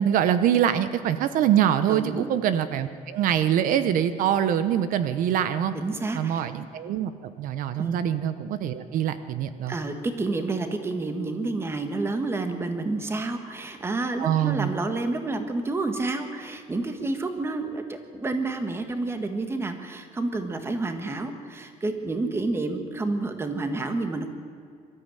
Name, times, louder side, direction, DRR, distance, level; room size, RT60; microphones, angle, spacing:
voice 1, 0.0-5.7 6.1-9.7 14.2-14.7, right 10 dB, 75° right, 12 dB, 1.0 m, -24 dB
voice 2, 1.9-2.3 5.7-6.4 7.8-8.0 9.7-24.3, right 3 dB, 15° right, 7 dB, 1.7 m, -29 dB
22.5 x 13.5 x 9.2 m, 2.3 s
cardioid pair, 170°, 14 cm